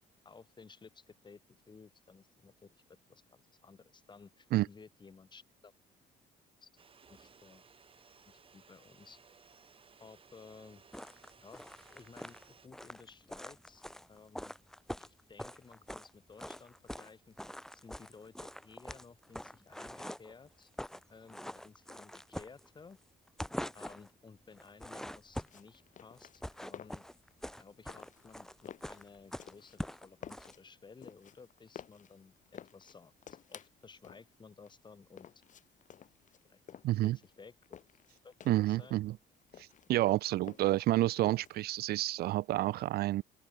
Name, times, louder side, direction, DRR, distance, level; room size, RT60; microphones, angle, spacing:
voice 1, 0.2-1.4 1.7-5.7 6.6-6.7 7.1-7.6 8.3-9.2 10.0-10.8 11.4-11.6 11.9-13.8 14.1-14.6 15.0-17.4 17.7-20.7 21.1-23.0 23.7-27.0 27.6-33.1 33.5-35.3 36.4-36.6 37.0-37.8 38.2-39.0, left 5 dB, 25° left, 3.8 m, -56 dB
sound 1, 6.8-12.7, right 6 dB, 30° right, 2.8 m, -61 dB
sound 2, 10.9-16.1 16.4-17.1 17.4-20.3 20.6-21.0 21.3-23.0 23.3-24.1 24.6-25.7 26.2-30.5, equal, 5° left, 1.7 m, -44 dB
sound 3, 25.4-42.0, left 9 dB, 50° left, 3.5 m, -53 dB
voice 2, 36.8-37.2 38.5-39.2 39.6-43.2, right 16 dB, 70° right, 0.6 m, -29 dB
open air
cardioid pair, 110°, 17 cm